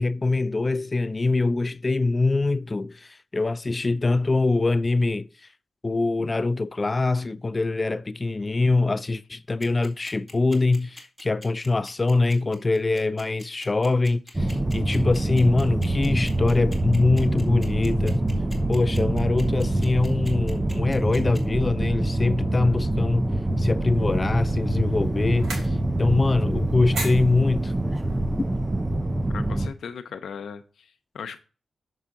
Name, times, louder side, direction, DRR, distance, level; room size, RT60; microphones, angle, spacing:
voice 1, 0.0-5.5 5.8-18.2 18.7-23.3 23.6-27.7, left 3 dB, 30° left, 0.4 m, -23 dB
sound 1, 9.6-21.4, left 1 dB, ahead, 2.3 m, -44 dB
sound 2, 14.3-29.7, right 1 dB, 20° right, 0.6 m, -25 dB
sound 3, 23.6-29.0, right 2 dB, 75° right, 3.6 m, -39 dB
voice 2, 29.3-31.4, left 6 dB, 80° left, 0.6 m, -38 dB
7.0 x 5.6 x 3.7 m
cardioid pair, 70°, 0 cm